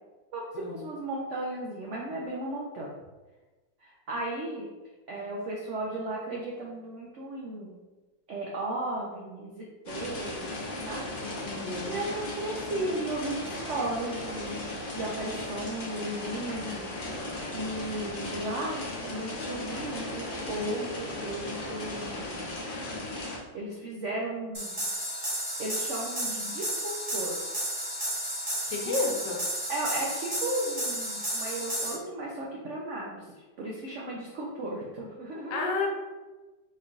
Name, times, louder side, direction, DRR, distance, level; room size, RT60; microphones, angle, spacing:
voice 1, 0.3-3.0 3.8-4.7 5.1-7.8 8.3-10.5 10.8-11.0 11.9-16.9 17.5-22.5 23.5-24.8 25.6-27.4 28.8-28.9 29.7-33.2 33.6-35.8, right 1 dB, 85° right, -3 dB, 0.6 m, -35 dB
sound 1, 9.9-23.4, left 2 dB, 45° left, 0.7 m, -36 dB
voice 2, 11.4-12.0 28.7-29.4 35.5-35.9, left 3 dB, 80° left, 1 dB, 1.3 m, -31 dB
sound 2, 24.5-31.9, right 1 dB, 30° right, 0.4 m, -32 dB
4.3 x 3.2 x 2.4 m, 1.2 s
omnidirectional pair, 2.0 m